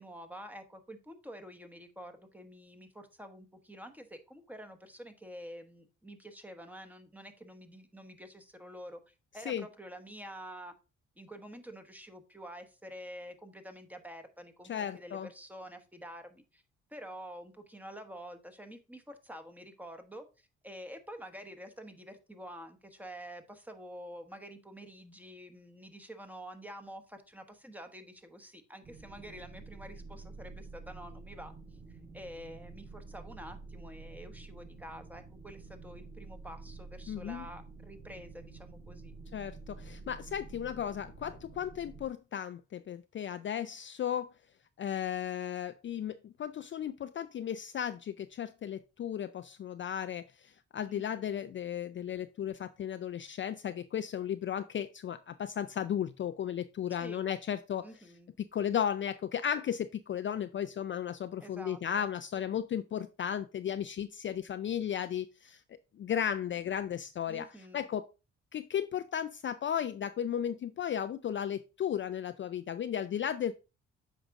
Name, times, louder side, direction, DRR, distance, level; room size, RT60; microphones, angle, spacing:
voice 1, 0.0-10.7 11.2-16.6 16.9-31.5 31.9-39.1 50.9-51.4 57.0-57.2 57.8-58.3 61.4-62.1 67.3-67.8, equal, 5° right, 1.2 m, -48 dB
voice 2, 14.7-15.3 37.1-37.4 39.3-44.3 44.8-57.9 58.4-65.6 66.0-67.5 67.7-68.0 68.5-73.5, left 9 dB, 40° left, 0.4 m, -35 dB
sound 1, 28.8-42.1, right 3 dB, 60° right, 4.8 m, -49 dB
8.1 x 5.1 x 3.6 m
cardioid pair, 90°, 30 cm